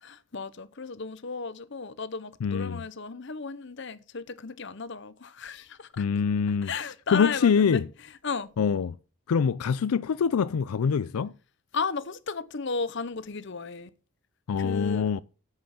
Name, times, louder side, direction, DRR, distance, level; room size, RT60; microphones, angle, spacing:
voice 1, 0.0-6.0 6.6-7.8 8.2-8.5 11.7-13.9 14.6-15.1, left 4 dB, 55° left, 0.8 m, -34 dB
voice 2, 2.4-2.8 6.0-6.7 7.1-7.9 8.6-9.0 9.3-11.3 14.5-15.2, left 6 dB, 90° left, 0.4 m, -24 dB
8.8 x 7.8 x 5.9 m
head